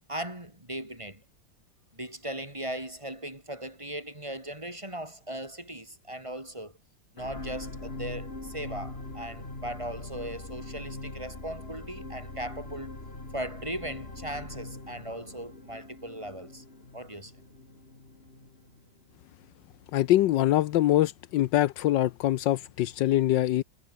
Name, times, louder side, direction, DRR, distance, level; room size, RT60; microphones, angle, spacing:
voice 1, 0.1-1.2 1.9-6.7 7.1-12.9 13.3-16.6 16.9-17.4, right 1 dB, 15° right, 3.4 m, -38 dB
sound 1, 7.2-19.6 20.1-20.2, left 2 dB, 30° left, 4.1 m, -42 dB
voice 2, 19.9-23.6, left 14 dB, 75° left, 1.3 m, -24 dB
omnidirectional pair, 2.0 m